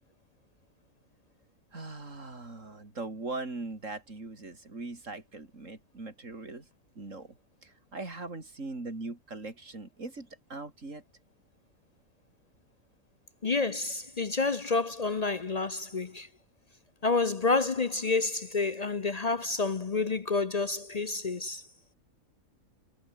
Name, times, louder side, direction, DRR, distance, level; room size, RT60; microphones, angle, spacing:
voice 1, 1.7-6.7 7.0-7.3 7.6-11.0, right 3 dB, 55° right, 4.4 m, -40 dB
voice 2, 13.4-16.3 17.0-21.6, left 3 dB, 40° left, 0.6 m, -29 dB
omnidirectional pair, 1.5 m